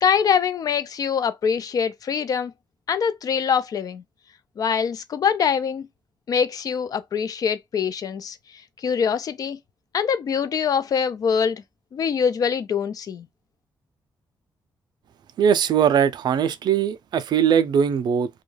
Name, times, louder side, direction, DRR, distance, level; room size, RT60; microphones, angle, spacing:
voice 1, 0.0-2.5 2.9-4.0 4.6-5.9 6.3-8.4 8.8-9.6 9.9-11.6 11.9-13.3, left 7 dB, 50° left, 0.3 m, -24 dB
voice 2, 15.4-18.3, right 8 dB, 65° right, 0.3 m, -20 dB
2.3 x 2.2 x 3.1 m
wide cardioid pair, 145°, 8 cm